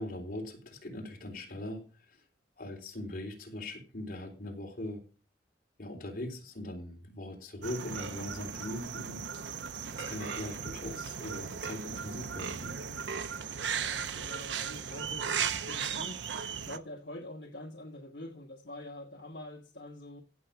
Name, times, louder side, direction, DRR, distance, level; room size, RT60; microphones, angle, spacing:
voice 1, 0.0-2.2 2.6-5.0 5.8-9.4 9.9-12.8, left 1 dB, 50° left, 2 dB, 3.7 m, -41 dB
sound 1, 7.6-16.8, right 7 dB, 85° right, 0.8 m, -36 dB
voice 2, 13.7-16.2 16.5-20.2, left 1 dB, 70° left, 3 dB, 1.2 m, -45 dB
16.0 x 6.8 x 5.9 m, 0.37 s
head